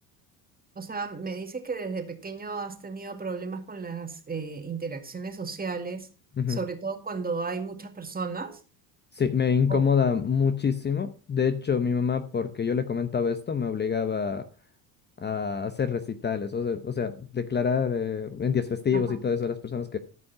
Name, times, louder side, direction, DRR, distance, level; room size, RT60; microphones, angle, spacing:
voice 1, 0.8-6.1 6.5-8.6 9.7-9.8 18.9-19.2, right 4 dB, 20° right, 5 dB, 2.0 m, -34 dB
voice 2, 9.1-14.4 15.2-20.0, left 6 dB, 25° left, 10 dB, 0.8 m, -26 dB
14.0 x 5.3 x 5.6 m, 0.38 s
supercardioid pair, 90°, 41 cm